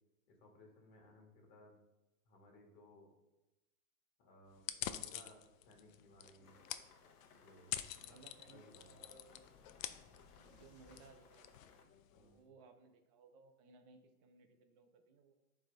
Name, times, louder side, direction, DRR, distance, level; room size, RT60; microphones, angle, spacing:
voice 1, 0.3-1.8 2.3-3.1 4.2-6.6 7.3-7.7 8.1-8.2 8.5-8.9 12.1-12.5, left 1 dB, 40° left, 1 dB, 1.9 m, -62 dB
sound 1, 4.6-12.3, left 11 dB, 65° left, 0.5 m, -48 dB
sound 2, 6.4-11.8, left 5 dB, 85° left, 1.0 m, -67 dB
Boom, 7.7-12.1, left 5 dB, 25° left, 0.8 m, -68 dB
voice 2, 8.0-9.5 10.4-15.3, right 4 dB, 25° right, 6 dB, 0.5 m, -63 dB
9.7 x 3.4 x 3.4 m, 1.0 s
hypercardioid pair, 135°, 44 cm